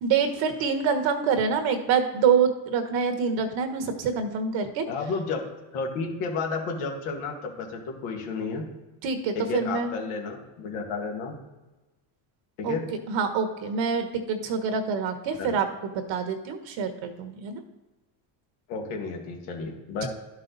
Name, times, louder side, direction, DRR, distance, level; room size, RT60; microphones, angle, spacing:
voice 1, 0.0-4.8 9.0-9.9 12.6-12.8 13.1-17.6 20.0-20.1, right 6 dB, 65° right, 6 dB, 1.4 m, -26 dB
voice 2, 4.9-5.4 5.7-8.6 9.3-11.3 12.6-12.9 15.4-15.6 18.7-20.1, left 4 dB, 90° left, 1 dB, 2.1 m, -32 dB
11.5 x 5.6 x 4.1 m, 1.1 s
cardioid pair, 130°, 49 cm